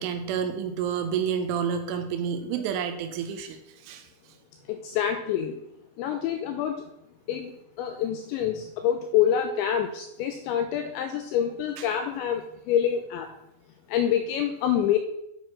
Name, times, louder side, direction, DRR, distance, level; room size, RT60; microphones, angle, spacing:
voice 1, 0.0-4.1 11.8-11.9, right 7 dB, 80° right, 7 dB, 3.2 m, -29 dB
voice 2, 4.7-5.6 6.0-6.9 7.3-13.3 13.9-15.0, left 9 dB, 85° left, 6 dB, 2.6 m, -27 dB
9.5 x 4.5 x 5.9 m, 0.79 s
omnidirectional pair, 5.8 m